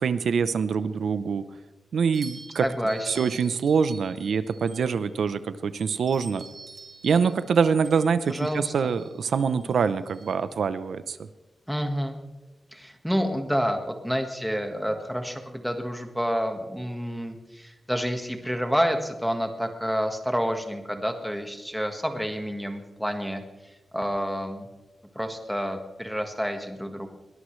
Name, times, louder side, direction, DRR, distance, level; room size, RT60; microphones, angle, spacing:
voice 1, 0.0-1.4 1.9-2.6 3.1-6.4 7.0-11.2, right 6 dB, 80° right, 12 dB, 0.7 m, -25 dB
sound 1, 2.1-5.2 5.7-10.3, right 3 dB, 40° right, 4.7 m, -47 dB
voice 2, 2.6-3.3 8.3-8.9 11.7-12.2 12.7-24.7 25.1-27.1, equal, ahead, 4 dB, 1.5 m, -29 dB
21.5 x 19.5 x 3.2 m, 1.1 s
wide cardioid pair, 175°, 0 cm